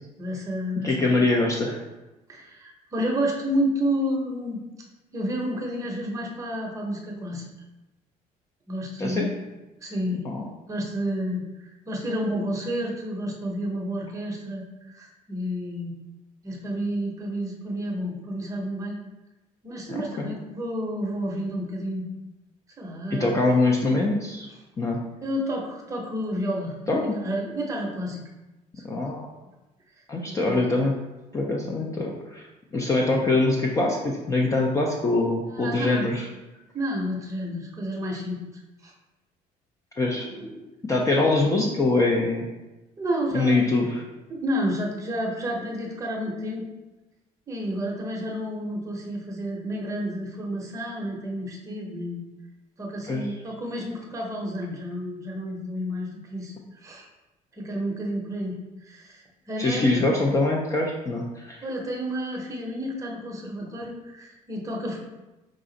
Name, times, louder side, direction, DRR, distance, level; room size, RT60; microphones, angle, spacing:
voice 1, 0.2-1.1 2.3-4.6 5.1-7.4 8.7-9.3 9.8-10.2 10.7-15.9 16.4-19.0 19.6-22.1 22.8-23.5 25.2-28.3 28.8-29.0 30.3-30.6 35.5-36.1 36.7-38.4 38.8-38.9 40.1-40.7 43.0-43.7 44.3-46.7 47.5-52.2 52.8-56.5 56.8-57.1 57.5-59.9 61.6-65.0, equal, 20° right, -1 dB, 0.7 m, -30 dB
voice 2, 0.8-1.8 9.0-9.3 10.2-10.4 19.9-20.3 23.1-24.5 24.8-25.0 26.9-27.2 28.8-29.3 30.1-30.9 31.3-32.5 32.7-36.3 40.0-40.3 40.8-42.5 43.3-44.1 53.1-53.2 59.6-61.6, left 2 dB, 20° left, -1 dB, 0.3 m, -23 dB
4.8 x 2.4 x 3.8 m, 1.1 s
cardioid pair, 160°, 16 cm